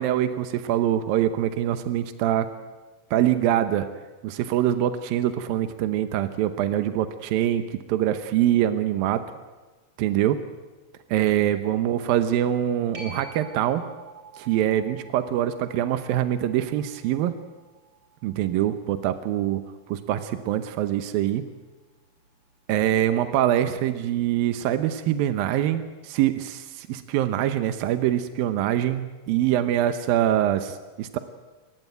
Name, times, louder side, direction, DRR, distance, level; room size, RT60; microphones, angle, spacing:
voice 1, 0.0-2.5 3.1-3.9 4.2-9.2 10.0-10.4 11.1-13.9 14.4-17.4 18.2-19.6 19.9-21.4 22.7-31.2, right 11 dB, 80° right, 10 dB, 2.1 m, -24 dB
sound 1, 12.9-20.1 25.6-25.7, right 3 dB, 25° right, 4.0 m, -48 dB
29.5 x 15.0 x 9.3 m, 1.2 s
omnidirectional pair, 5.4 m